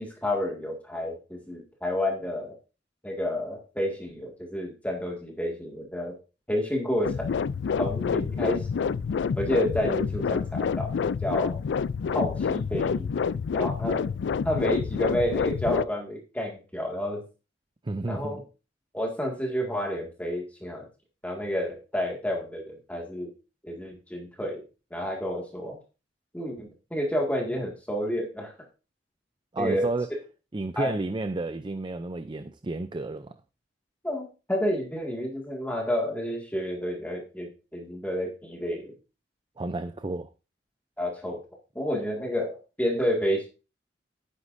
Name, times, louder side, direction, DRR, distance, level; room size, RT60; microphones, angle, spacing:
voice 1, 0.0-2.6 3.0-6.2 6.5-7.3 7.8-8.7 9.4-10.9 11.2-11.6 12.1-13.1 13.5-14.1 14.4-17.2 18.1-18.4 18.9-20.9 21.2-23.3 23.6-24.6 24.9-25.8 26.3-28.5 29.6-29.9 30.8-31.0 34.0-38.9 41.0-41.4 41.8-43.5, equal, 10° left, 2.0 m, -30 dB
sound 1, 7.0-15.9, left 6 dB, 75° left, 0.4 m, -28 dB
voice 2, 17.8-18.4 29.5-30.1 30.5-33.3 39.6-40.3, right 2 dB, 25° right, 0.5 m, -31 dB
11.5 x 9.9 x 2.6 m
head